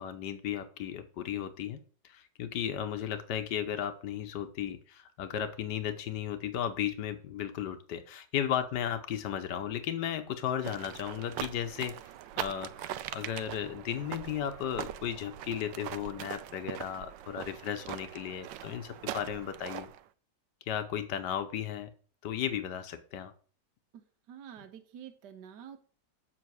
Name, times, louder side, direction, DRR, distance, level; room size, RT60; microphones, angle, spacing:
voice 1, 0.0-12.0 12.4-19.9 20.7-21.9 22.2-23.3, left 9 dB, 75° left, 9 dB, 1.5 m, -35 dB
sound 1, 10.6-20.0, right 12 dB, 90° right, 1.3 m, -41 dB
voice 2, 23.9-25.8, right 9 dB, 70° right, 7 dB, 1.5 m, -48 dB
7.7 x 6.2 x 6.1 m, 0.42 s
omnidirectional pair, 1.9 m